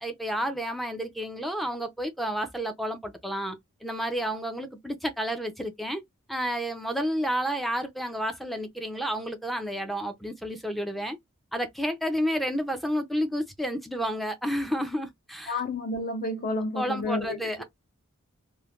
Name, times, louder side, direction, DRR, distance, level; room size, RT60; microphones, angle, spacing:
voice 1, 0.0-6.0 6.3-11.2 11.5-15.6 16.8-17.6, equal, ahead, 0.4 m, -30 dB
voice 2, 15.5-17.5, left 2 dB, 40° left, 0.7 m, -30 dB
3.1 x 2.1 x 2.3 m
head